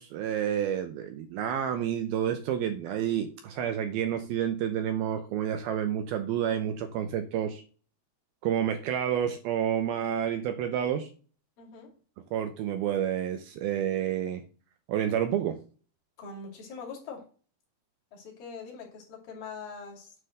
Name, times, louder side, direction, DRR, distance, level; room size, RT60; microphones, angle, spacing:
voice 1, 0.0-7.6 8.4-11.1 12.3-14.4 14.9-15.6, right 9 dB, 80° right, 7 dB, 2.2 m, -29 dB
voice 2, 11.6-11.9 16.2-17.3 18.1-20.1, left 5 dB, 55° left, -1 dB, 4.1 m, -43 dB
9.7 x 3.8 x 6.5 m, 0.39 s
omnidirectional pair, 5.0 m